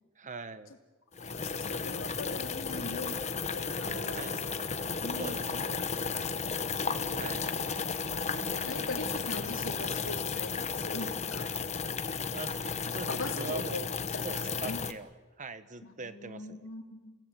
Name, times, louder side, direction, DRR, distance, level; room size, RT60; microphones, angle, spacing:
voice 1, 0.2-0.7 4.1-4.4 5.2-5.8 7.1-7.5 12.3-12.7 12.9-13.9 14.2-15.1 15.4-16.7, right 3 dB, 35° right, 12 dB, 1.2 m, -41 dB
sound 1, 1.1-14.9, left 5 dB, 30° left, 1.1 m, -34 dB
voice 2, 1.2-4.6 5.0-5.7 6.0-6.6 7.3-7.7 8.6-11.5 12.8-14.8 15.8-17.2, left 2 dB, 60° left, 4 dB, 2.8 m, -41 dB
sound 2, 3.8-11.6, right 5 dB, 70° right, 1.5 m, -49 dB
29.5 x 18.0 x 8.2 m, 1.2 s
head